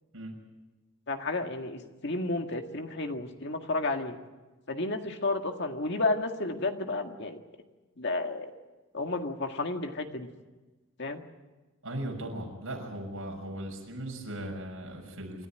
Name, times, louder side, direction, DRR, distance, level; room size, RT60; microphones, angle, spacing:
voice 1, 1.1-4.2 4.7-7.4 8.0-8.5 8.9-10.3 11.0-11.2, left 2 dB, 55° left, 5 dB, 1.9 m, -32 dB
voice 2, 11.8-15.5, right 1 dB, 80° right, 1 dB, 6.2 m, -38 dB
27.5 x 13.0 x 9.9 m, 1.2 s
head